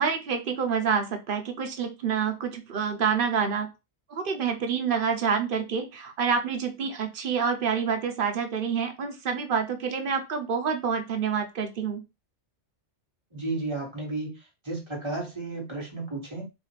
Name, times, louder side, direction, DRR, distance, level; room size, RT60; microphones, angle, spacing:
voice 1, 0.0-3.7 4.1-12.0, right 6 dB, 55° right, 5 dB, 0.8 m, -27 dB
voice 2, 13.3-14.4 14.6-16.5, right 2 dB, 25° right, -1 dB, 1.5 m, -33 dB
4.0 x 2.4 x 3.1 m, 0.25 s
omnidirectional pair, 1.2 m